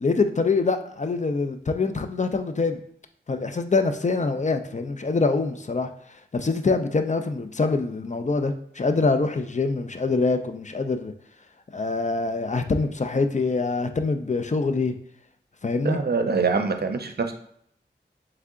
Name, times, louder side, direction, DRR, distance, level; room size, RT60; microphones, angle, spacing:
voice 1, 0.0-2.8 3.3-5.9 6.3-11.1 11.7-14.9 15.6-16.0, left 3 dB, 40° left, 0.5 m, -24 dB
voice 2, 15.8-17.3, right 4 dB, 60° right, 0.6 m, -24 dB
3.6 x 3.3 x 3.6 m
cardioid pair, 45°, 19 cm